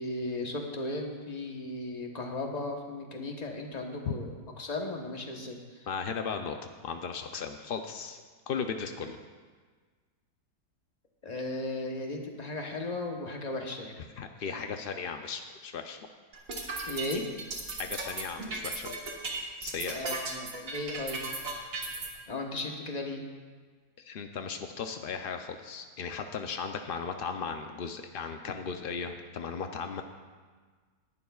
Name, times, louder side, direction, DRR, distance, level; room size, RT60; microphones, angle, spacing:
voice 1, 0.0-5.9 11.2-14.0 14.5-14.8 16.9-17.3 19.9-21.3 22.3-23.3, left 2 dB, 30° left, 2 dB, 1.0 m, -36 dB
voice 2, 5.9-6.6 6.8-9.2 14.2-16.1 17.8-18.9 19.6-20.0 24.0-30.0, left 6 dB, 80° left, 6 dB, 0.5 m, -36 dB
sound 1, 16.3-22.1, right 3 dB, 60° right, 1.8 m, -36 dB
18.5 x 11.0 x 2.4 m, 1.5 s
omnidirectional pair, 1.7 m